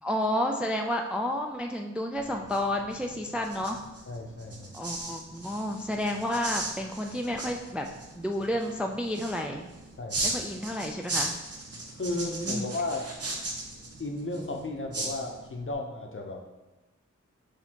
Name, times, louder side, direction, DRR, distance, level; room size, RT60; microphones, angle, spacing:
voice 1, 0.0-3.8 4.7-7.9 8.1-9.7 10.2-11.3 12.1-12.7, left 1 dB, 5° right, 2 dB, 0.3 m, -31 dB
sound 1, 2.1-15.7, right 2 dB, 50° right, 0.7 m, -38 dB
voice 2, 4.1-4.7 10.0-10.3 12.0-13.0 14.0-16.4, left 2 dB, 45° left, 2 dB, 0.7 m, -34 dB
6.1 x 2.7 x 2.9 m, 1.1 s
wide cardioid pair, 50°, 30 cm